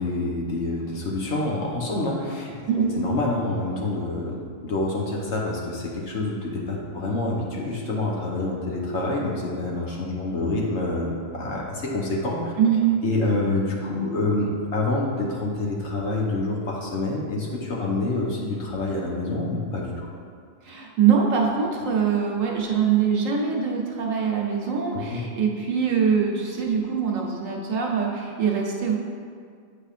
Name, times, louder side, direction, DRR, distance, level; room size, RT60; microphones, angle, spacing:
voice 1, 0.0-12.5 13.0-20.1 24.9-25.2, left 2 dB, 60° left, -3 dB, 1.1 m, -27 dB
voice 2, 2.7-3.0 12.6-13.0 20.6-28.9, right 7 dB, 70° right, -1 dB, 1.2 m, -23 dB
8.5 x 4.9 x 2.5 m, 2.2 s
omnidirectional pair, 1.4 m